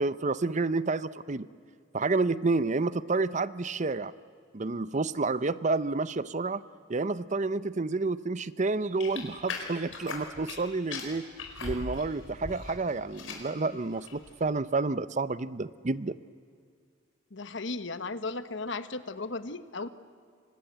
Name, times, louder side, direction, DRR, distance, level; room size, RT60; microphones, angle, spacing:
voice 1, 0.0-1.5 1.9-4.1 4.5-6.6 6.9-11.3 11.6-16.2, right 3 dB, 35° right, 16 dB, 0.7 m, -29 dB
sound 1, 9.0-10.6 10.9-12.7 13.0-13.5 14.0-14.3, left 4 dB, 80° left, 5.1 m, -39 dB
voice 2, 17.3-19.9, left 3 dB, 65° left, 12 dB, 1.2 m, -35 dB
29.5 x 25.0 x 8.1 m, 2.2 s
head